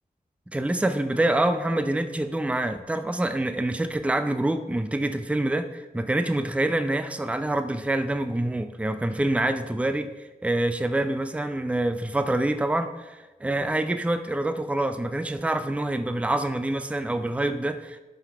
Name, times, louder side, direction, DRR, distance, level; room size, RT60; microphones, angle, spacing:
voice 1, 0.5-10.1 10.4-18.0, right 1 dB, 10° right, 9 dB, 0.5 m, -26 dB
12.5 x 5.9 x 3.6 m, 1.2 s
wide cardioid pair, 90°, 15 cm